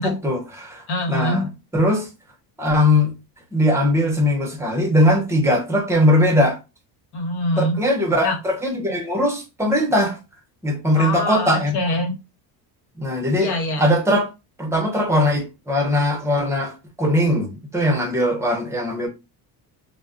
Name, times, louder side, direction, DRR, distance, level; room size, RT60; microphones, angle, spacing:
voice 1, 0.0-2.1 2.6-3.1 3.5-6.6 7.6-10.2 10.6-11.8 13.0-14.3 14.6-19.1, left 1 dB, 5° right, 0.6 m, -20 dB
voice 2, 0.9-1.5 7.1-7.8 8.2-8.4 10.9-12.1 13.4-13.9, left 1 dB, 65° left, 1.2 m, -24 dB
2.3 x 2.0 x 3.7 m
cardioid pair, 150°, 42 cm